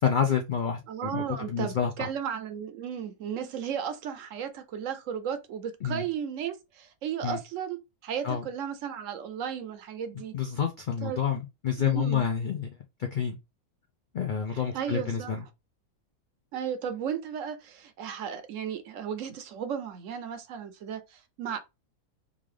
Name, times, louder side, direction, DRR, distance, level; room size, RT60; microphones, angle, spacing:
voice 1, 0.0-2.1 5.8-6.0 7.2-7.4 8.2-8.4 10.3-12.7 13.0-13.4 14.1-15.4, left 7 dB, 85° left, 0.4 m, -28 dB
voice 2, 0.9-10.3 11.0-11.2 11.8-12.2 14.5-15.3 16.5-21.6, right 8 dB, 70° right, 0.9 m, -35 dB
3.8 x 2.4 x 3.2 m
omnidirectional pair, 1.5 m